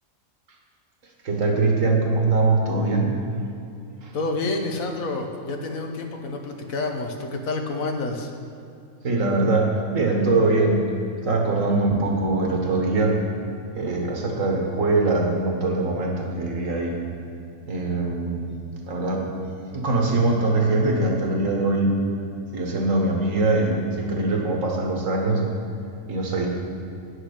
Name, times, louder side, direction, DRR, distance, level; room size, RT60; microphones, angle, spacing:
voice 1, 1.2-3.2 4.0-4.1 9.0-10.8 11.2-13.2 13.7-17.0 17.6-18.5 18.8-19.3 19.7-22.0 22.5-25.4 26.1-26.5, right 2 dB, 65° right, 1 dB, 1.8 m, -22 dB
voice 2, 4.1-8.3, left 2 dB, 75° left, 3 dB, 1.4 m, -28 dB
10.0 x 6.6 x 6.6 m, 2.6 s
omnidirectional pair, 1.5 m